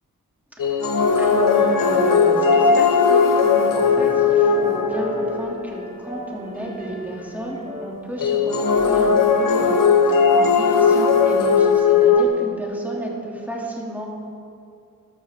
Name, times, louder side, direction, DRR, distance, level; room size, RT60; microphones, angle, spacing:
sound 1, 0.6-5.7 8.2-12.2, left 5 dB, 65° left, 0.9 m, -17 dB
voice 1, 0.6-14.1, equal, 5° right, -3 dB, 2.7 m, -32 dB
sound 2, 1.1-7.9, equal, 25° right, 2.6 m, -35 dB
13.0 x 12.5 x 3.7 m, 2.5 s
wide cardioid pair, 60°, 35 cm